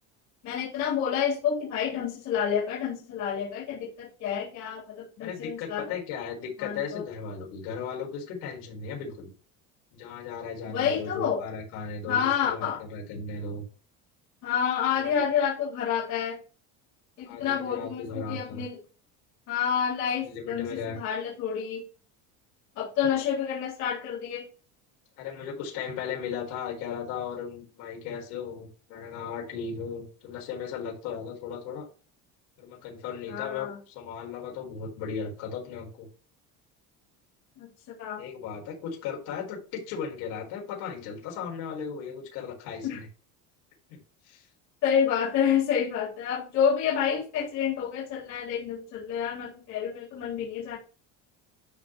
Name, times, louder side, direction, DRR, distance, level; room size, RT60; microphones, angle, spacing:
voice 1, 0.4-5.8 6.6-7.0 10.7-11.4 12.1-12.8 14.4-16.4 17.2-18.8 19.5-21.8 22.8-24.5 33.3-33.8 37.6-37.7 38.0-38.2 42.8-43.0 44.8-50.8, left 8 dB, 50° left, -5 dB, 3.9 m, -28 dB
voice 2, 5.2-9.3 9.9-13.6 14.9-15.3 17.3-18.6 20.2-21.0 25.2-31.9 32.6-36.1 38.2-43.1 43.9-44.0 44.2-44.5, left 6 dB, 80° left, -1 dB, 4.4 m, -36 dB
12.0 x 4.3 x 3.2 m, 0.37 s
cardioid pair, 165°, 35 cm